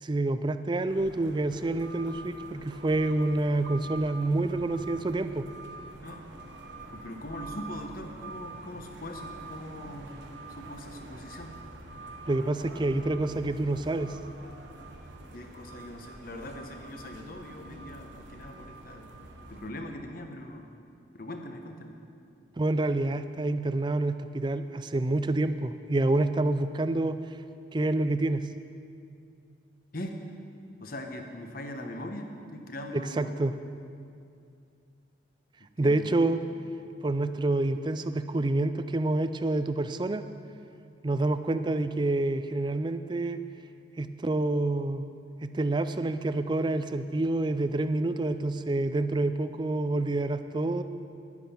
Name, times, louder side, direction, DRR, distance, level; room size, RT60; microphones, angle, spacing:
voice 1, 0.0-5.5 12.3-14.2 22.6-27.2 27.7-28.4 32.9-33.5 35.8-36.4 37.0-40.2 41.0-43.4 44.0-45.0 45.4-50.8, right 2 dB, 25° right, 11 dB, 0.4 m, -27 dB
sound 1, 0.9-19.7, right 2 dB, 75° right, 1.2 m, -46 dB
voice 2, 6.9-10.1 10.5-11.6 15.3-19.1 19.5-20.7 21.1-21.9 29.9-30.2 30.8-33.3 35.6-36.1, left 1 dB, 50° left, 4 dB, 1.0 m, -41 dB
11.0 x 10.5 x 5.7 m, 2.5 s
head